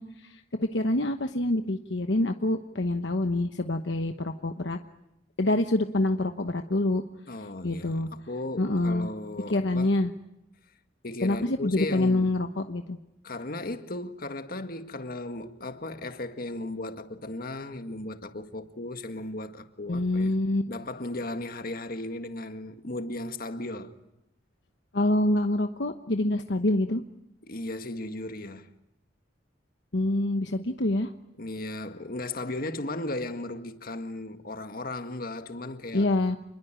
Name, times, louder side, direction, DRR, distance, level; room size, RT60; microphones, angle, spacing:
voice 1, 0.0-4.8 5.4-7.0 7.6-8.1 8.6-9.1 9.5-10.1 11.2-13.0 19.9-20.6 24.9-27.0 29.9-31.1 35.9-36.4, left 2 dB, 70° left, 1.1 m, -26 dB
voice 2, 7.3-9.9 11.0-12.3 13.2-20.3 20.7-24.0 27.4-28.7 31.4-36.1, left 2 dB, 50° left, 1.8 m, -36 dB
28.0 x 21.5 x 9.1 m
head